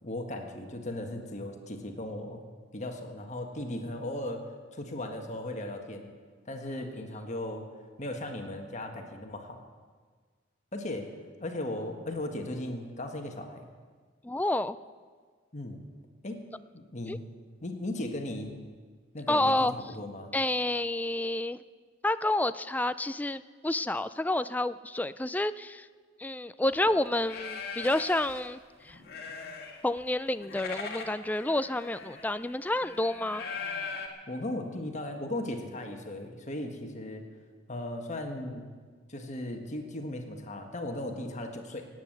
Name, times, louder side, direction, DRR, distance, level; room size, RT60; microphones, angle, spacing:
voice 1, 0.0-2.4 2.7-4.4 4.7-6.1 6.4-7.7 8.0-9.6 10.7-11.1 11.4-13.7 15.5-15.8 16.2-16.4 16.7-17.2 17.6-18.6 19.1-20.3 34.3-37.2 37.7-38.7 39.1-41.9, left 1 dB, 40° left, 4 dB, 1.6 m, -37 dB
voice 2, 14.2-14.8 17.1-17.2 19.3-19.7 20.3-21.6 22.0-25.9 26.2-29.0 29.8-33.4, left 1 dB, 10° left, 13 dB, 0.3 m, -29 dB
sound 1, 26.7-26.9 27.3-28.5 28.8-30.0 30.3-34.1, left 4 dB, 55° left, 2.1 m, -40 dB
17.5 x 9.2 x 7.9 m, 1.5 s
head